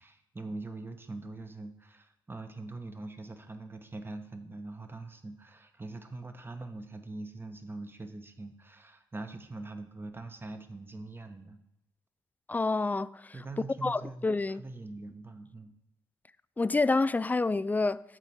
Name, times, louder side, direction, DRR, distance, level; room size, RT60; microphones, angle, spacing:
voice 1, 0.0-11.6 13.3-15.7, right 2 dB, 20° right, 1.1 m, -43 dB
voice 2, 12.5-13.3 13.8-14.6 16.6-18.0, left 3 dB, 15° left, 0.3 m, -28 dB
8.9 x 4.0 x 6.3 m
hypercardioid pair, 45°, 10 cm